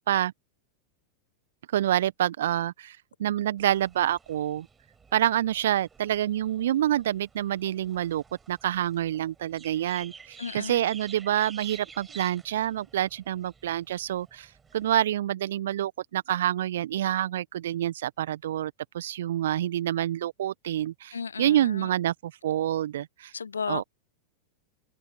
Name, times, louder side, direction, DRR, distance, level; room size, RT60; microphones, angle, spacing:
voice 1, 1.7-4.7 5.1-23.3 23.7-23.8, right 12 dB, 60° right, 1.5 m, -27 dB
sound 1, 3.6-14.9, right 5 dB, 15° right, 7.0 m, -51 dB
voice 2, 10.4-10.8 21.1-21.9 23.3-23.8, left 6 dB, 75° left, 0.6 m, -34 dB
figure-of-eight pair, 90°, 0 cm